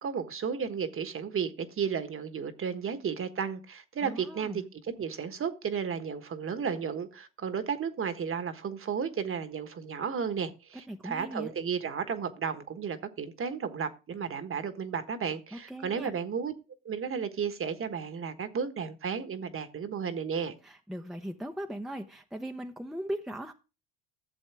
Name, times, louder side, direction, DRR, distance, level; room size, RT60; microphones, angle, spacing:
voice 1, 0.0-4.6 5.0-16.5 16.8-20.5, right 6 dB, 35° right, 1.3 m, -33 dB
voice 2, 4.0-4.7 10.9-11.5 15.5-16.1 20.6-23.5, right 1 dB, ahead, 0.8 m, -38 dB
12.0 x 7.2 x 3.4 m
supercardioid pair, 85°, 36 cm